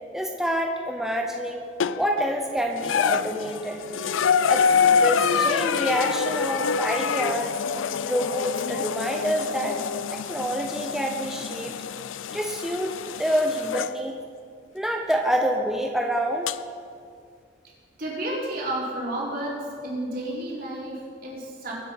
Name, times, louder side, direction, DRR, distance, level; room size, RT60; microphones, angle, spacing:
voice 1, 0.1-1.6 1.9-3.8 4.5-7.6 8.0-9.8 10.1-11.8 12.3-14.1 14.7-16.5, equal, ahead, 1 dB, 0.8 m, -27 dB
sound 1, 1.8-2.3 2.8-14.0 15.1-15.2 16.5-16.6, left 6 dB, 85° left, 0.4 m, -26 dB
voice 2, 18.0-21.8, right 1 dB, 50° right, -5 dB, 4.2 m, -31 dB
23.0 x 8.2 x 5.6 m, 2.3 s
head